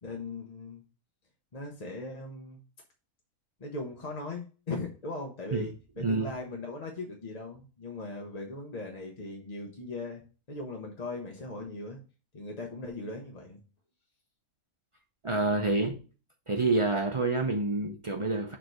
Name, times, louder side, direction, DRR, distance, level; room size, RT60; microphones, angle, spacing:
voice 1, 0.0-0.8 1.5-2.6 3.6-12.0 12.3-13.6, left 2 dB, 35° left, 0.7 m, -39 dB
voice 2, 6.0-6.3 15.2-16.0 16.5-18.6, right 2 dB, 55° right, 0.3 m, -28 dB
6.5 x 3.3 x 4.6 m
omnidirectional pair, 1.5 m